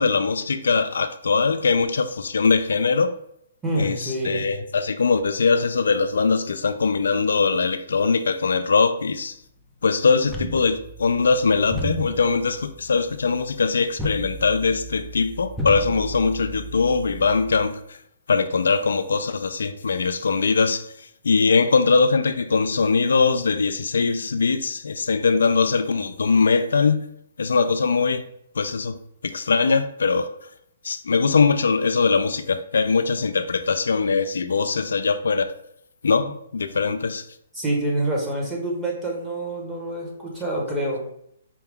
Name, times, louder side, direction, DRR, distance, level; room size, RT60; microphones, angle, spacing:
voice 1, 0.0-3.1 3.8-9.4 9.8-17.7 18.3-20.8 21.2-27.1 27.4-28.2 28.6-29.0 29.2-30.3 30.8-35.5 36.0-37.2, left 4 dB, 85° left, 9 dB, 0.3 m, -21 dB
voice 2, 3.6-4.4 37.5-41.0, right 1 dB, 10° right, -3 dB, 1.1 m, -26 dB
sound 1, 10.2-17.7, right 1 dB, 5° left, 0.5 m, -34 dB
4.7 x 2.2 x 3.5 m, 0.72 s
hypercardioid pair, 150°, 0 cm